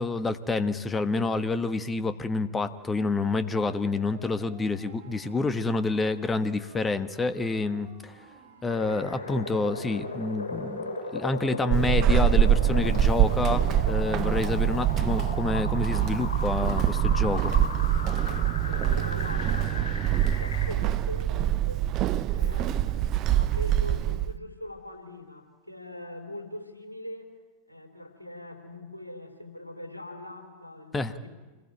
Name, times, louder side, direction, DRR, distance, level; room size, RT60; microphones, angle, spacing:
voice 1, 0.0-8.2 8.6-10.8 11.1-17.5 30.9-31.1, left 3 dB, 15° left, 11 dB, 1.4 m, -28 dB
Siren, 3.0-13.4, right 5 dB, 65° right, 4.7 m, -51 dB
sound 1, 8.7-20.7, left 3 dB, 70° left, 7.8 m, -36 dB
Walk footsteps / Squeak, 11.7-24.4, right 11 dB, 35° right, 0.9 m, -25 dB
voice 2, 18.3-27.3 27.7-31.3, left 1 dB, 85° left, 5 dB, 3.7 m, -42 dB
28.0 x 20.5 x 9.1 m, 1.2 s
figure-of-eight pair, 90°, 0 cm